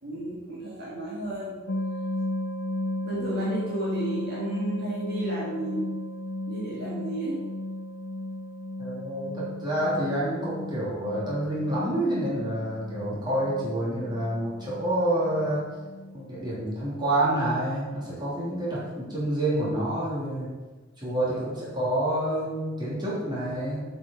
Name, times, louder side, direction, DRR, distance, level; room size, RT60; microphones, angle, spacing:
voice 1, 0.0-1.6 3.0-5.8 6.5-7.4, right 1 dB, 55° right, -6 dB, 2.1 m, -33 dB
sound 1, 1.7-16.6, left 1 dB, 55° left, 0.5 m, -35 dB
voice 2, 8.8-15.7 16.1-20.6 21.0-23.8, right 1 dB, 25° right, -7 dB, 3.3 m, -28 dB
7.7 x 6.0 x 5.8 m, 1.3 s
head